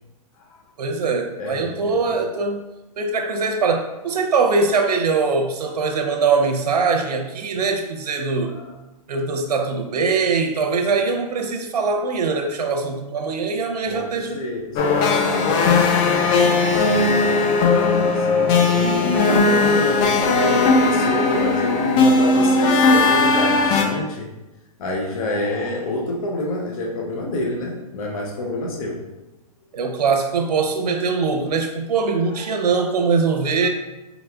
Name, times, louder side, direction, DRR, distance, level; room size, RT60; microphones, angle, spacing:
voice 1, 0.8-2.6 3.0-8.6 9.1-14.4 18.7-19.4 29.7-33.7, right 4 dB, 90° right, 5 dB, 0.7 m, -22 dB
voice 2, 1.4-2.2 8.4-8.8 13.9-18.7 19.3-24.3 24.8-29.0 33.6-33.7, left 1 dB, 60° left, 0 dB, 0.8 m, -28 dB
sound 1, 14.8-23.8, left 3 dB, 25° left, 0.3 m, -17 dB
4.1 x 3.9 x 2.3 m, 1.0 s
hypercardioid pair, 145°, 20 cm